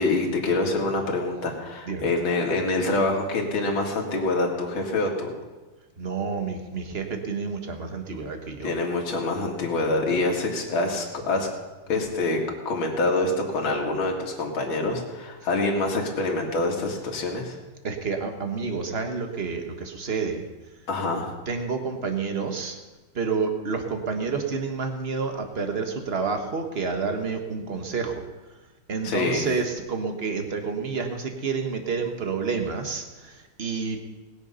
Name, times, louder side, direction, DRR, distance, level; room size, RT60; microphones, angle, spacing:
voice 1, 0.0-5.3 8.6-11.5 11.9-12.4 12.7-17.6 20.9-21.3 29.0-29.5, left 2 dB, 70° left, 0 dB, 2.8 m, -26 dB
voice 2, 6.0-8.7 17.8-20.4 21.5-22.8 23.1-28.2 28.9-34.0, right 5 dB, 35° right, 5 dB, 1.4 m, -29 dB
20.0 x 8.0 x 5.6 m, 1.2 s
omnidirectional pair, 2.3 m